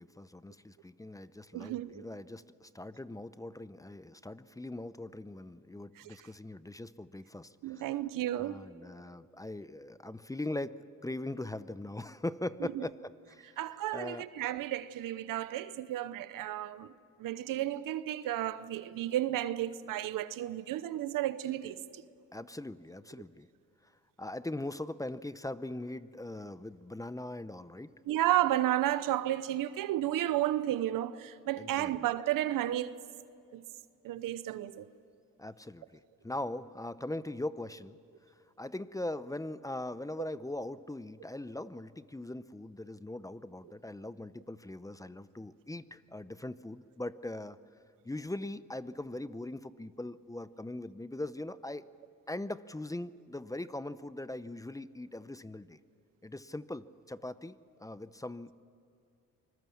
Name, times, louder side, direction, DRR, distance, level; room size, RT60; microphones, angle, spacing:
voice 1, 0.0-7.9 8.3-14.3 22.3-23.5 24.2-27.9 31.6-32.1 35.4-38.0 38.6-47.6 48.0-51.9 52.3-55.8 56.2-58.5, left 1 dB, 10° left, 0.7 m, -41 dB
voice 2, 1.5-2.1 7.6-8.6 12.7-12.9 13.6-16.9 17.2-22.0 28.1-32.9 33.5-33.6 34.0-34.9, right 13 dB, 85° right, 0.9 m, -32 dB
25.0 x 21.0 x 7.3 m
cardioid pair, 80°, 32 cm